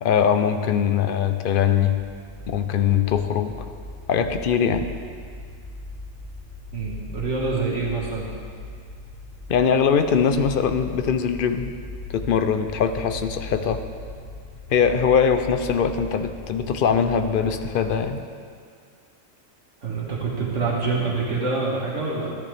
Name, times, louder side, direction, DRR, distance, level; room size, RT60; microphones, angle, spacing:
voice 1, 0.0-2.0 2.5-3.5 4.1-4.9 9.5-11.7 12.1-13.8 14.7-18.2, left 7 dB, 55° left, 8 dB, 0.6 m, -21 dB
sound 1, 1.7-17.9, left 2 dB, 85° left, 2.3 m, -39 dB
voice 2, 6.7-8.3 19.8-22.4, right 4 dB, 60° right, -3 dB, 1.7 m, -26 dB
13.5 x 11.0 x 3.4 m, 2.2 s
omnidirectional pair, 1.4 m